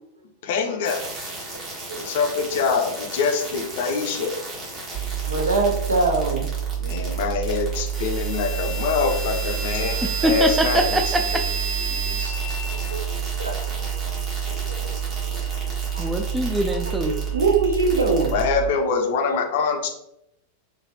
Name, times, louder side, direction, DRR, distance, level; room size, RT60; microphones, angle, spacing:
voice 1, 0.4-1.0 2.0-4.4 6.8-10.0 10.2-11.0 18.3-19.9, left 5 dB, 50° left, 4 dB, 0.5 m, -24 dB
sound 1, 0.8-18.4, right 3 dB, 25° right, 1.0 m, -33 dB
sound 2, 4.9-18.7, right 9 dB, 55° right, 1.2 m, -29 dB
voice 2, 5.3-6.5 11.9-12.4 12.9-13.1 13.4-15.0 15.2-15.5 15.9-16.1 17.3-18.4, right 3 dB, 75° right, 2 dB, 0.5 m, -25 dB
voice 3, 10.2-11.4 16.0-17.1, equal, 10° right, 6 dB, 0.3 m, -23 dB
3.2 x 2.2 x 2.6 m, 0.81 s
figure-of-eight pair, 90°, 0 cm